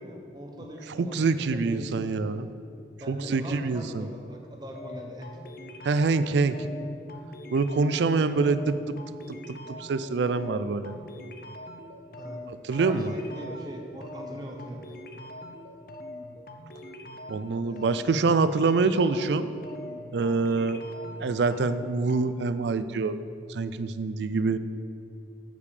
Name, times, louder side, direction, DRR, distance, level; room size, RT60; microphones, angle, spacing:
voice 1, 0.0-2.3 3.0-5.4 12.2-12.4 12.7-14.8 17.6-18.0, equal, 25° right, 1 dB, 0.9 m, -41 dB
voice 2, 1.0-2.5 3.1-4.1 5.8-6.7 7.5-9.0 9.3-11.0 12.5-13.1 17.3-19.5 20.1-20.8 21.2-23.2 23.5-24.6, right 4 dB, 75° right, 13 dB, 0.4 m, -25 dB
sound 1, 4.7-22.3, left 1 dB, 55° left, 0.6 m, -43 dB
8.4 x 5.2 x 6.6 m, 2.5 s
head